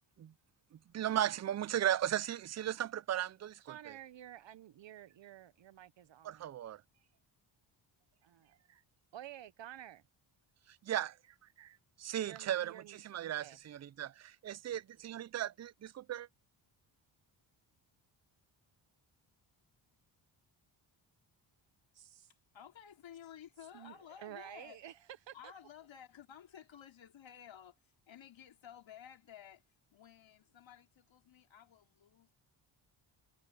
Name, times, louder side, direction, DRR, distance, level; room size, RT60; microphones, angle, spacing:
voice 1, 0.9-3.5 6.3-6.8 10.9-11.1 11.6-11.7 12.0-12.7 13.1-14.1 14.4-16.3, right 11 dB, 35° right, 0.5 m, -36 dB
voice 2, 3.6-6.5 8.2-8.6 9.1-10.0 12.2-13.6 21.9-22.3 23.7-25.5, right 12 dB, 65° right, 0.9 m, -51 dB
voice 3, 22.3-24.8 25.3-29.6 29.9-32.3, left 9 dB, 70° left, 3.3 m, -54 dB
cardioid pair, 90°, 48 cm